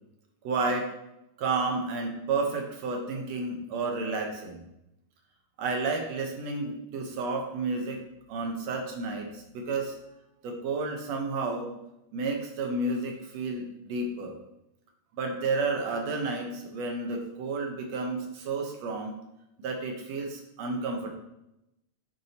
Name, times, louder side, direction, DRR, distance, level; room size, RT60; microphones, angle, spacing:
voice 1, 0.4-0.9 1.4-4.6 5.6-8.0 8.3-9.9 10.4-11.7 12.1-14.4 15.1-19.2 19.6-21.1, right 3 dB, 65° right, 2 dB, 2.1 m, -31 dB
9.0 x 7.4 x 2.9 m, 0.87 s
omnidirectional pair, 3.5 m